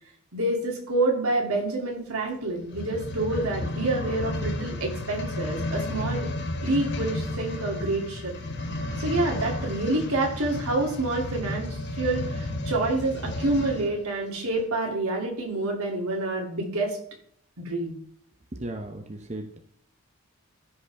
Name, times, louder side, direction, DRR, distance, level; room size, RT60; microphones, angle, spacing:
voice 1, 0.3-6.3 6.6-8.3 9.0-17.0 17.6-18.0, right 2 dB, 75° right, 0 dB, 2.7 m, -27 dB
sound 1, 2.6-14.0 14.6-14.7, left 1 dB, 50° left, 1.0 m, -32 dB
voice 2, 18.5-19.6, right 1 dB, 30° right, 3 dB, 0.7 m, -36 dB
14.0 x 5.4 x 3.4 m, 0.62 s
head